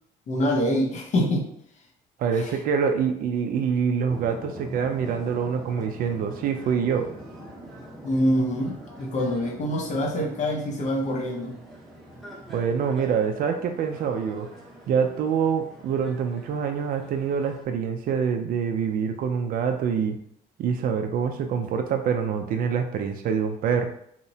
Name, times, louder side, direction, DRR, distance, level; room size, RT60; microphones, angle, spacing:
voice 1, 0.3-1.5 2.4-2.5 8.0-11.6, equal, 45° left, 2 dB, 0.6 m, -25 dB
voice 2, 2.2-7.1 12.5-14.5 14.9-20.2 20.6-23.9, right 6 dB, 55° right, 6 dB, 0.4 m, -25 dB
sound 1, 4.1-17.6, right 1 dB, ahead, 0.7 m, -44 dB
2.8 x 2.0 x 2.7 m, 0.69 s
cardioid pair, 110°, 17 cm